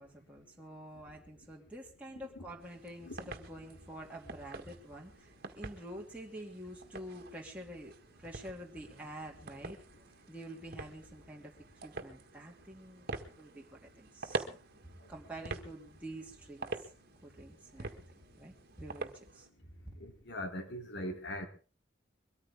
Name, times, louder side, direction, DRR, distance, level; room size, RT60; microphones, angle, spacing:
voice 1, 0.0-9.8 10.3-11.5 11.8-14.6 14.8-16.9 17.2-18.0 18.3-19.5 19.8-19.9, right 1 dB, 5° right, 2.6 m, -48 dB
sound 1, 2.6-19.5, right 3 dB, 55° right, 1.7 m, -46 dB
voice 2, 20.0-21.5, left 1 dB, 65° left, 3.3 m, -40 dB
23.0 x 14.0 x 3.6 m
head